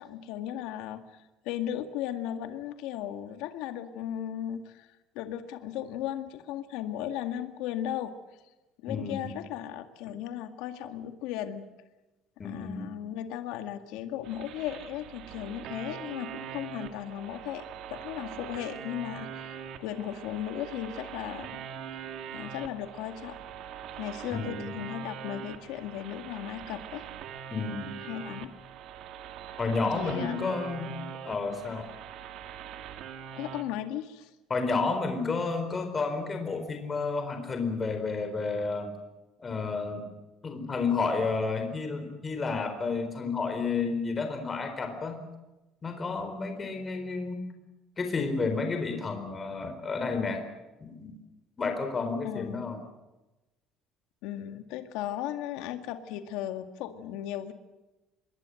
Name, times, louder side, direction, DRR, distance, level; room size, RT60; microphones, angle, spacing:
voice 1, 0.0-4.9 5.2-8.4 8.8-11.7 12.4-17.6 17.9-21.6 22.3-23.4 24.0-27.0 28.0-28.5 29.8-30.6 33.3-34.3 52.2-52.7 54.2-57.5, left 11 dB, 85° left, 8 dB, 2.0 m, -36 dB
voice 2, 8.9-9.3 12.4-12.9 24.3-24.7 27.5-27.9 29.6-30.9 31.2-31.8 34.5-38.9 39.4-40.0 40.4-45.2 45.8-47.4 48.0-50.4 50.8-51.2 51.6-52.8, left 4 dB, 20° left, 6 dB, 4.3 m, -31 dB
sound 1, 14.2-33.6, right 8 dB, 60° right, 2.2 m, -42 dB
25.5 x 21.5 x 7.8 m, 1.0 s
cardioid pair, 160°, 0 cm